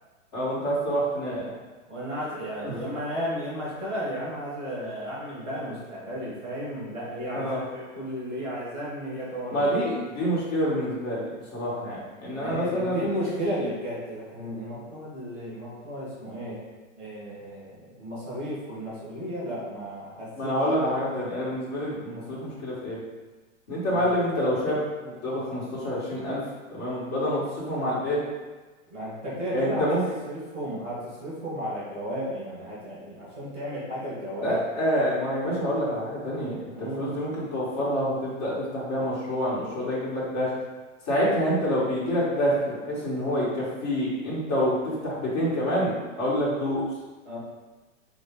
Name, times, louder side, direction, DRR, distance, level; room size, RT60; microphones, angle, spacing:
voice 1, 0.3-1.4 2.6-2.7 7.3-7.6 9.5-13.1 20.4-23.0 23.7-26.4 26.7-28.2 29.5-30.0 34.4-40.5 41.1-46.8, equal, 30° left, -7 dB, 1.2 m, -27 dB
voice 2, 1.9-9.7 12.3-16.6 17.0-20.5 23.8-24.1 28.9-29.9 30.3-34.6 36.7-37.1 47.2-47.4, equal, 10° left, -16 dB, 0.3 m, -33 dB
4.4 x 2.0 x 3.5 m, 1.3 s
hypercardioid pair, 170°, 40 cm